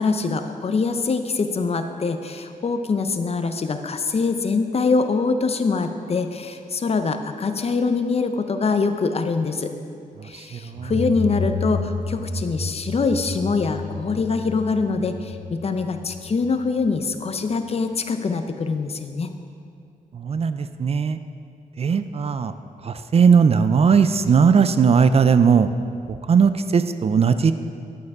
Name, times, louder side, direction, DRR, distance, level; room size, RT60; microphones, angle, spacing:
voice 1, 0.0-9.7 10.2-19.3, left 4 dB, 45° left, 7 dB, 0.6 m, -24 dB
voice 2, 10.2-10.9 20.1-21.2 21.8-22.5 22.8-25.7 26.1-27.5, right 6 dB, 45° right, 11 dB, 0.4 m, -18 dB
sound 1, 10.7-17.3, left 3 dB, 20° right, 2.2 m, -31 dB
11.0 x 6.6 x 4.8 m, 2.4 s
wide cardioid pair, 100°, 15 cm